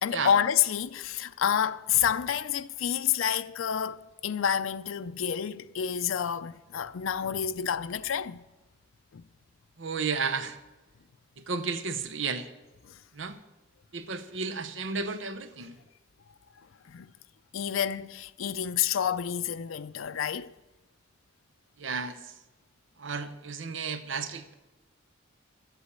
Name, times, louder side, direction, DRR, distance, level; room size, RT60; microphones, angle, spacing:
voice 1, 0.0-8.4 9.1-9.2 12.9-13.0 16.9-17.1 17.5-20.5, left 8 dB, 85° left, 0.5 m, -29 dB
voice 2, 9.8-10.6 11.5-12.5 13.2-13.4 13.9-15.7 21.8-22.2 23.0-24.5, right 5 dB, 70° right, 0.8 m, -32 dB
12.0 x 8.2 x 8.1 m
head